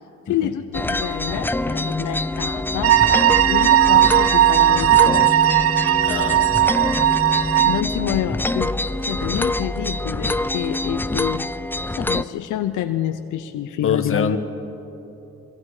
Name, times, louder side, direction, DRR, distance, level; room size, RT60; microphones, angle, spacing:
voice 1, 0.3-3.0 3.5-5.3 7.6-8.7 9.0-11.5 12.0-14.4, left 11 dB, 80° left, 8 dB, 0.8 m, -27 dB
sound 1, 0.7-12.2, left 2 dB, 5° left, 0.4 m, -25 dB
sound 2, 2.8-7.8, right 13 dB, 50° right, 0.5 m, -17 dB
voice 2, 6.0-6.5 13.8-14.4, left 6 dB, 45° left, 8 dB, 1.5 m, -24 dB
24.0 x 23.5 x 4.9 m, 2.9 s
cardioid pair, 90°, 30 cm